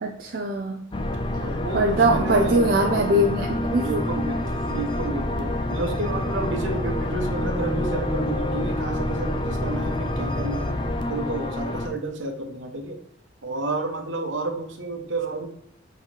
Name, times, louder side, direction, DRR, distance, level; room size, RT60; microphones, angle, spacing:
voice 1, 0.0-0.8 1.7-4.0, right 1 dB, 50° right, 1 dB, 0.6 m, -22 dB
sound 1, 0.9-11.9, left 1 dB, 25° left, 0.6 m, -27 dB
voice 2, 1.4-2.6 3.8-4.4 4.7-10.7 11.1-13.0 13.4-15.5, right 2 dB, 70° right, 4 dB, 1.1 m, -31 dB
7.6 x 3.9 x 3.4 m, 0.72 s
head